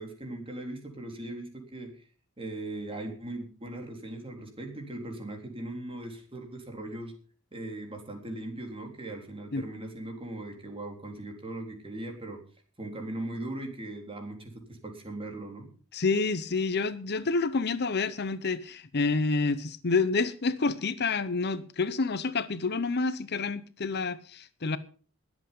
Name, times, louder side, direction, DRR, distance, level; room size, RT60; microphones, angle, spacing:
voice 1, 0.0-2.0 2.4-7.1 7.5-12.4 12.8-15.7, right 1 dB, 25° right, 3.8 m, -39 dB
voice 2, 15.9-24.8, left 4 dB, 50° left, 0.8 m, -28 dB
21.0 x 8.2 x 5.4 m
head